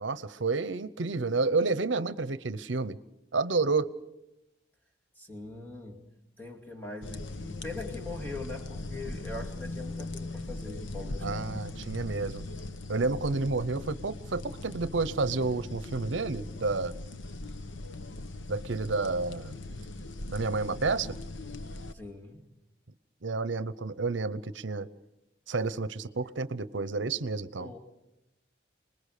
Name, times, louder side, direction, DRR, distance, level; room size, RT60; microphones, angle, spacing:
voice 1, 0.0-3.0 3.3-3.9 11.2-12.4 12.9-17.0 18.5-19.6 20.3-21.1 23.2-24.9 25.5-27.7, right 3 dB, 75° right, 15 dB, 0.8 m, -30 dB
voice 2, 5.2-6.0 6.4-11.5 21.9-22.5 27.6-27.8, left 2 dB, 10° left, 0 dB, 2.6 m, -42 dB
sound 1, 7.0-21.9, left 2 dB, 80° left, 1.1 m, -40 dB
27.0 x 20.5 x 6.7 m, 0.91 s
head